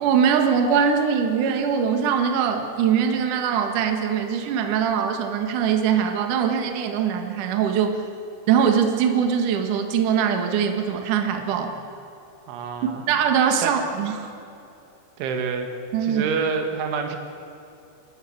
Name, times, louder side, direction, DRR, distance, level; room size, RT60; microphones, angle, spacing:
voice 1, 0.0-8.0 8.5-11.7 13.1-14.3 15.9-16.2, right 7 dB, 55° right, 5 dB, 2.5 m, -22 dB
voice 2, 12.5-13.0 13.6-13.8 15.2-15.7 16.0-17.2, right 5 dB, 85° right, 5 dB, 4.1 m, -27 dB
29.5 x 13.5 x 8.7 m, 2.8 s
omnidirectional pair, 5.3 m